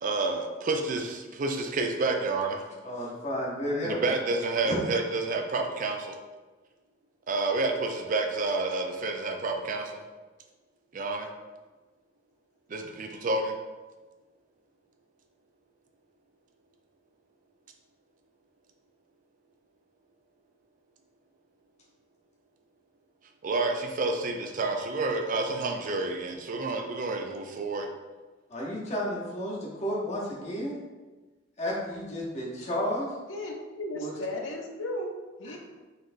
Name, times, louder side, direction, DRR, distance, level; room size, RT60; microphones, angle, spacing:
voice 1, 0.0-2.6 3.8-6.2 7.3-10.0 10.9-11.3 12.7-13.5 23.4-27.9, right 3 dB, 45° right, 4 dB, 0.4 m, -29 dB
voice 2, 2.8-4.2 4.6-4.8 28.5-30.8 31.6-33.1 33.9-34.1 35.5-35.6, equal, 35° left, -4 dB, 0.8 m, -32 dB
voice 3, 33.3-35.1 35.4-35.6, left 1 dB, 85° left, 1 dB, 0.6 m, -35 dB
4.1 x 3.1 x 2.6 m, 1.3 s
head